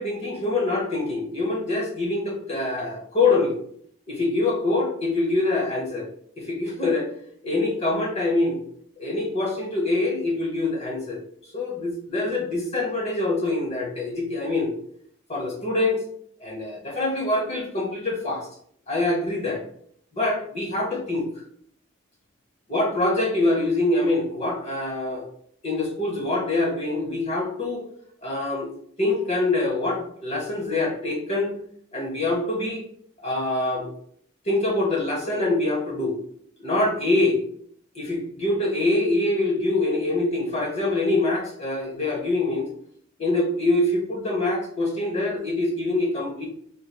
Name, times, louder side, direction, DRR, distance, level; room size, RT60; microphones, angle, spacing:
voice 1, 0.0-3.6 4.1-6.1 6.4-7.1 7.4-8.6 9.0-11.2 11.5-14.7 15.3-16.0 16.4-18.5 18.9-19.6 20.1-21.3 22.7-25.3 25.6-27.8 28.2-28.7 29.0-31.5 31.9-32.8 33.2-33.9 34.4-36.2 36.6-37.4 37.9-42.7 43.2-46.5, left 2 dB, 30° left, -1 dB, 0.8 m, -24 dB
3.9 x 3.1 x 2.2 m, 0.63 s
head